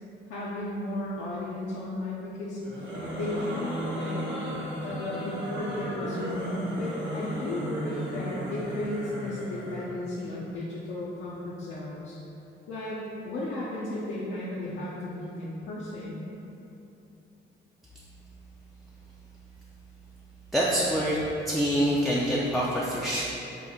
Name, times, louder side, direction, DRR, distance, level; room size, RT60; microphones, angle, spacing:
voice 1, 0.3-2.6 3.1-4.2 4.8-12.2 12.7-16.3, left 1 dB, 75° left, -7 dB, 0.5 m, -34 dB
sound 1, 2.6-9.9, equal, 70° right, 0.9 m, -34 dB
voice 2, 20.5-23.2, equal, ahead, -6 dB, 0.4 m, -26 dB
3.9 x 2.1 x 3.6 m, 2.9 s
cardioid pair, 90°, 20 cm